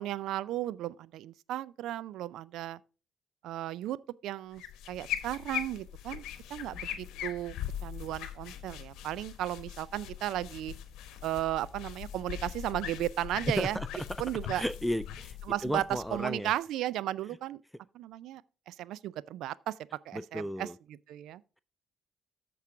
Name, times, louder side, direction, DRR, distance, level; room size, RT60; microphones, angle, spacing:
voice 1, 0.0-2.8 3.4-4.0 4.2-4.6 4.9-6.2 6.5-7.5 7.8-10.7 11.2-13.8 14.2-14.6 15.5-15.8 16.1-17.6 17.9-18.4 18.7-19.7 20.1-20.7 21.1-21.4, right 13 dB, 70° right, 0.4 m, -35 dB
sound 1, 4.5-16.5, left 10 dB, 70° left, 1.0 m, -41 dB
voice 2, 13.5-14.1 14.5-16.5 20.1-20.8, equal, ahead, 0.4 m, -34 dB
13.5 x 4.7 x 3.7 m
hypercardioid pair, 50°, 0 cm